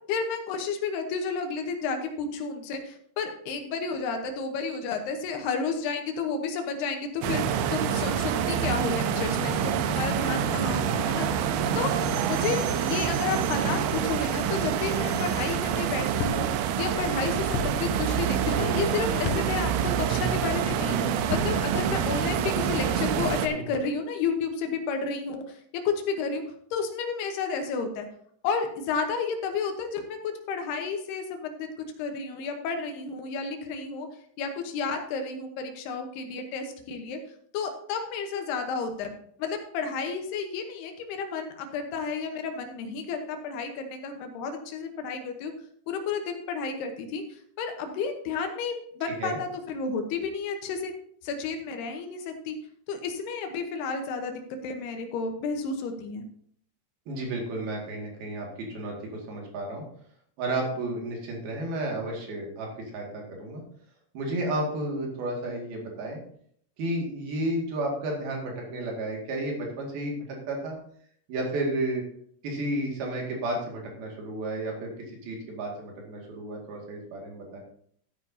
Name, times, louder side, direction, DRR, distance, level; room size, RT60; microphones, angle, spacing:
voice 1, 0.1-7.4 7.7-11.3 11.7-11.9 12.3-26.4 26.7-28.1 28.4-30.2 30.5-31.7 32.0-34.1 34.4-37.2 37.5-45.5 45.9-47.2 47.6-50.9 51.2-52.6 52.9-54.3 54.6-56.2, left 5 dB, 75° left, 5 dB, 2.6 m, -31 dB
sound 1, 7.2-23.5, right 8 dB, 80° right, 3.0 m, -27 dB
sound 2, 16.2-16.4 17.5-17.7 19.2-19.4 21.2-21.5, left 7 dB, 90° left, 3.5 m, -30 dB
voice 2, 57.1-59.8 60.4-62.7 62.9-63.6 64.1-66.2 66.8-70.8 71.3-72.0 72.4-74.9 75.2-77.6, right 1 dB, 55° right, 0 dB, 3.5 m, -32 dB
13.5 x 9.7 x 2.8 m, 0.63 s
omnidirectional pair, 5.6 m